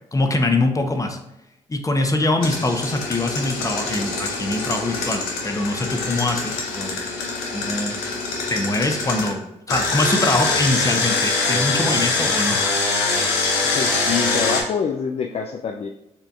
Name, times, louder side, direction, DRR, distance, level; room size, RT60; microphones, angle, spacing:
voice 1, 0.1-1.2 1.7-7.0 7.5-7.9 8.5-12.6, left 2 dB, 20° left, 5 dB, 0.7 m, -23 dB
Engine, 2.4-9.3 9.7-14.6, left 3 dB, 85° left, 0.7 m, -24 dB
voice 2, 13.7-15.9, left 6 dB, 40° left, 4 dB, 0.4 m, -25 dB
6.5 x 2.6 x 2.4 m, 0.88 s
hypercardioid pair, 45°, 16 cm